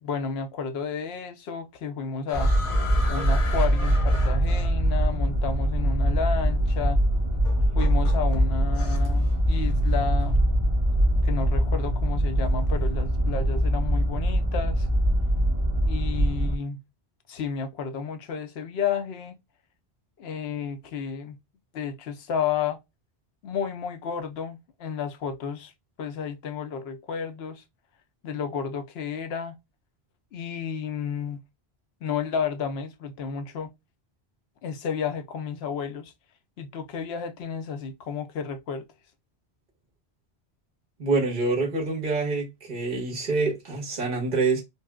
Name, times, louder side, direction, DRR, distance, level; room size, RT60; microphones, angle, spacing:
voice 1, 0.0-2.5 3.1-7.0 7.8-10.4 11.2-14.9 15.8-16.8 17.3-19.4 20.2-21.4 21.7-22.8 23.4-25.7 26.0-27.6 28.2-29.5 30.3-31.4 32.0-33.7 34.6-36.1 36.6-38.9, left 6 dB, 75° left, 0.8 m, -32 dB
sound 1, 2.3-5.1 6.2-6.3 7.4-9.2 9.5-9.9, left 3 dB, 35° left, 0.7 m, -37 dB
sound 2, 2.3-16.6, right 1 dB, 35° right, 0.8 m, -23 dB
voice 2, 41.0-44.6, right 3 dB, 50° right, 1.4 m, -26 dB
4.2 x 2.0 x 2.2 m
omnidirectional pair, 1.1 m